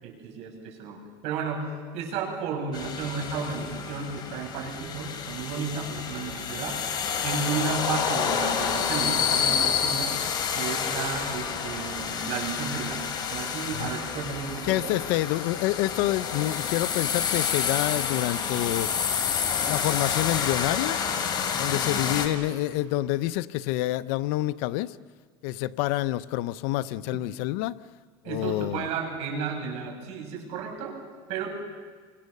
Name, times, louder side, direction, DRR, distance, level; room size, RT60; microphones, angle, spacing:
voice 1, 0.0-6.8 7.2-10.2 10.5-13.0 13.3-15.0 28.2-31.0 31.3-31.5, right 5 dB, 60° right, 2 dB, 7.4 m, -33 dB
sound 1, 2.7-22.3, left 7 dB, 35° left, 3.4 m, -29 dB
voice 2, 14.7-19.2 19.7-21.0 21.6-25.0 25.4-27.8 28.3-28.9, left 16 dB, 75° left, 14 dB, 0.8 m, -27 dB
29.0 x 26.0 x 6.7 m, 1.5 s
supercardioid pair, 135°, 13 cm